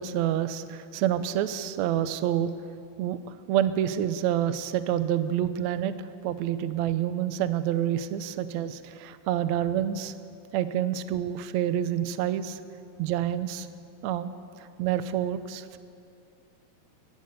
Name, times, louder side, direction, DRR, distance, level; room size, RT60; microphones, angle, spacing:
voice 1, 0.0-2.5 3.0-5.9 6.2-10.1 10.5-12.6 13.0-13.7 14.0-15.8, right 10 dB, 80° right, 12 dB, 1.6 m, -28 dB
23.5 x 15.0 x 9.5 m, 2.4 s
omnidirectional pair, 4.4 m